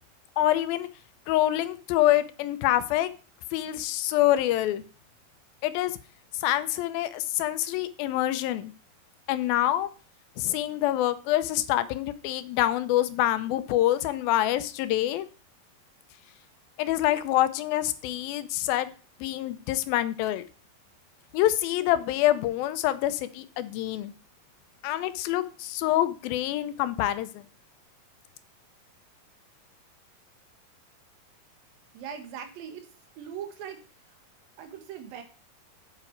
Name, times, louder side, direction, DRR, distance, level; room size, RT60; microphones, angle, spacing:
voice 1, 0.4-0.9 1.3-3.1 3.5-4.8 5.6-5.9 6.4-8.7 9.3-9.9 10.4-15.3 16.8-18.9 19.2-20.4 21.3-24.1 24.8-27.4, left 14 dB, 85° left, 12 dB, 2.5 m, -26 dB
voice 2, 31.9-32.9 33.2-33.8 34.6-35.2, right 8 dB, 80° right, 7 dB, 3.1 m, -40 dB
8.4 x 7.7 x 4.5 m, 0.37 s
omnidirectional pair, 4.1 m